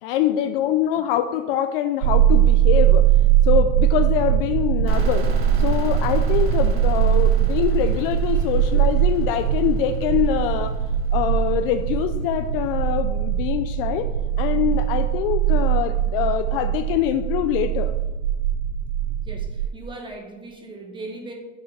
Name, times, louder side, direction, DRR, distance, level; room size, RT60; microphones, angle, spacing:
voice 1, 0.0-3.1 3.4-5.3 5.6-10.7 11.1-14.1 14.4-17.9, left 10 dB, 45° left, 9 dB, 0.4 m, -24 dB
sound 1, 2.0-19.7, right 11 dB, 65° right, 0.6 m, -21 dB
sound 2, 4.9-12.4, right 2 dB, 35° right, 1.3 m, -30 dB
voice 2, 19.2-21.3, right 2 dB, 10° right, 3 dB, 1.1 m, -38 dB
6.8 x 5.0 x 5.7 m, 1.2 s
supercardioid pair, 150°, 39 cm